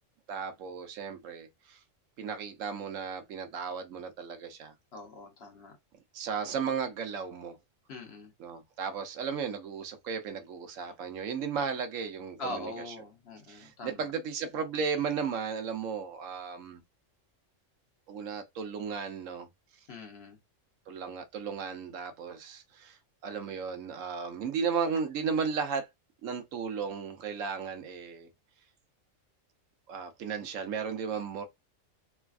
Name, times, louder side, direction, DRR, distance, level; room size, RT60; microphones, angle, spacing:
voice 1, 0.3-1.8 2.2-4.7 6.1-7.5 8.4-12.7 13.5-16.8 18.1-19.5 20.9-23.0 23.2-25.9 26.2-28.3 29.9-31.4, right 6 dB, 90° right, 1.1 m, -35 dB
voice 2, 4.9-5.8 7.9-8.3 10.9-11.0 12.4-14.1 19.9-20.4, left 2 dB, 55° left, 1.0 m, -42 dB
3.3 x 2.3 x 2.3 m
omnidirectional pair, 1.3 m